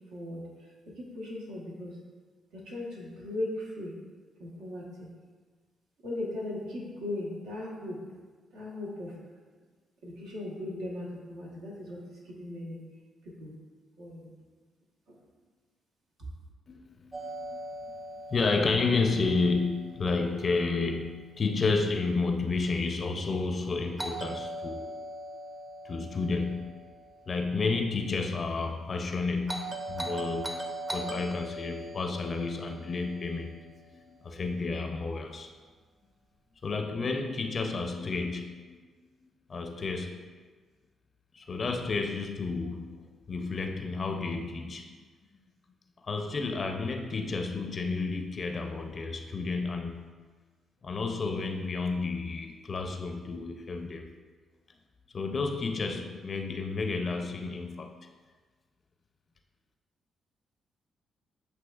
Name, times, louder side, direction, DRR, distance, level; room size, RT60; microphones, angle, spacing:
voice 1, 0.1-0.4 1.0-1.9 2.5-3.9 4.4-5.1 6.0-8.0 8.5-9.1 10.0-12.8 13.4-13.5 14.0-14.3, left 1 dB, 80° right, -4 dB, 1.1 m, -38 dB
voice 2, 16.7-17.6 18.3-24.9 25.8-26.7 27.3-33.7 34.0-35.5 36.6-38.8 39.5-40.2 41.3-44.9 46.0-50.1 50.8-54.1 55.1-57.9, left 4 dB, 50° left, 5 dB, 0.4 m, -31 dB
Doorbell, 17.1-21.1 24.0-28.2 29.5-33.9, right 1 dB, 25° right, 0.7 m, -41 dB
7.8 x 2.8 x 2.4 m, 1.4 s
supercardioid pair, 55°, 0 cm